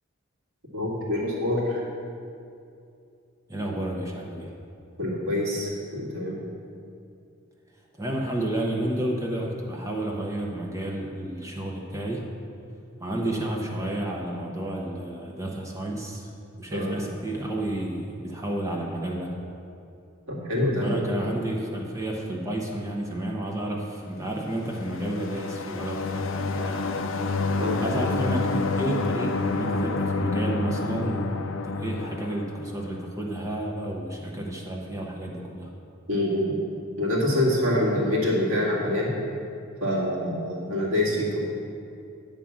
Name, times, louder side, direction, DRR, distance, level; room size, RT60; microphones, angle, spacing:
voice 1, 0.7-1.8 5.0-6.4 13.2-13.3 16.7-16.9 20.3-21.3 27.6-27.8 36.1-36.5 37.0-39.1 39.8-41.4, left 1 dB, 80° right, -5 dB, 2.1 m, -26 dB
voice 2, 3.5-4.5 8.0-12.2 13.0-16.3 16.6-19.3 20.8-27.4 27.8-35.7, right 1 dB, 15° right, -1 dB, 0.7 m, -31 dB
sound 1, 24.4-33.1, left 3 dB, 60° left, 0.5 m, -29 dB
9.9 x 3.6 x 7.2 m, 2.5 s
head